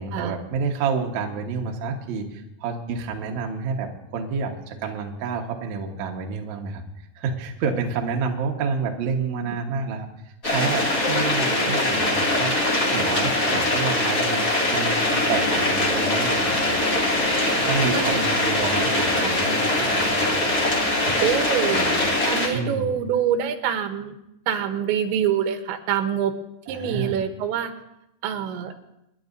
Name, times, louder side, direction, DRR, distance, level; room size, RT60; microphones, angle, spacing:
voice 1, 0.0-6.8 7.2-10.1 10.4-12.6 12.9-17.1 17.6-22.0 22.5-22.9 26.7-27.2, right 5 dB, 65° right, 1 dB, 1.9 m, -29 dB
sound 1, 10.4-22.5, left 1 dB, 30° left, 1.9 m, -22 dB
voice 2, 17.9-18.2 19.1-19.4 21.2-21.8 22.3-24.2 24.5-26.3 26.7-27.7 28.2-28.7, right 8 dB, 90° right, 7 dB, 3.3 m, -25 dB
27.5 x 11.0 x 2.6 m, 0.87 s
omnidirectional pair, 5.1 m